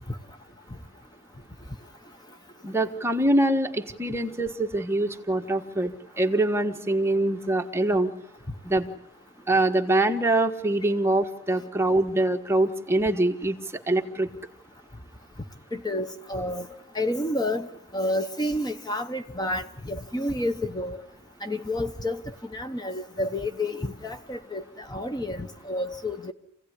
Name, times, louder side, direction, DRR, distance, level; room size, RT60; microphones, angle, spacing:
voice 1, 2.6-8.1 8.6-8.9 9.5-13.6 13.9-14.3, right 1 dB, 10° right, 1.4 m, -24 dB
voice 2, 15.7-17.7 17.9-21.0 21.4-22.2 22.5-26.3, left 1 dB, 20° left, 1.0 m, -30 dB
27.5 x 17.0 x 9.9 m
head